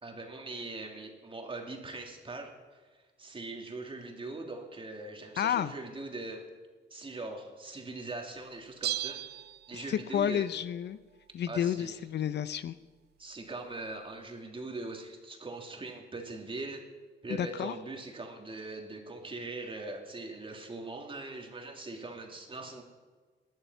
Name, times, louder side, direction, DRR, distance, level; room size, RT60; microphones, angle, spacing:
voice 1, 0.0-6.4 6.9-9.3 9.7-10.5 11.5-12.0 13.2-16.8 17.2-22.8, right 2 dB, 25° right, 2 dB, 2.9 m, -41 dB
voice 2, 5.4-5.7 9.7-11.0 11.3-12.8 17.4-17.7, left 9 dB, 60° left, 14 dB, 0.6 m, -31 dB
Bell, 8.8-10.2 10.5-10.6, right 12 dB, 55° right, 0.4 m, -36 dB
20.0 x 11.0 x 5.7 m, 1.4 s
cardioid pair, 90°, 20 cm